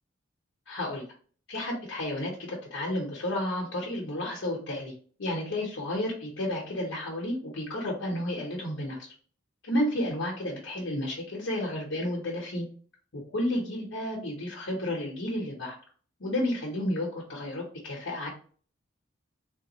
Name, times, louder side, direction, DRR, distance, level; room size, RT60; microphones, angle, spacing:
voice 1, 0.7-1.0 1.5-4.9 5.2-9.1 9.6-12.7 13.1-15.8 16.2-18.3, left 1 dB, 80° left, -4 dB, 0.9 m, -31 dB
3.6 x 2.3 x 2.9 m, 0.43 s
head